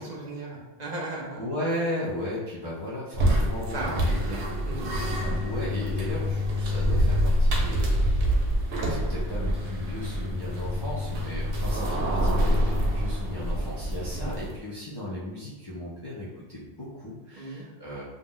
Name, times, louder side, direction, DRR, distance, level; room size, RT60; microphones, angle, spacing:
voice 1, 0.0-1.4 3.7-4.4 4.6-5.0 14.1-14.3 17.3-17.6, right 2 dB, 50° right, -3 dB, 0.6 m, -36 dB
voice 2, 1.4-4.1 5.2-8.2 8.9-18.0, left 1 dB, 40° left, -8 dB, 0.3 m, -36 dB
sound 1, 3.1-14.6, equal, 85° right, 0.9 m, -26 dB
2.5 x 2.0 x 3.7 m, 1.1 s
omnidirectional pair, 1.1 m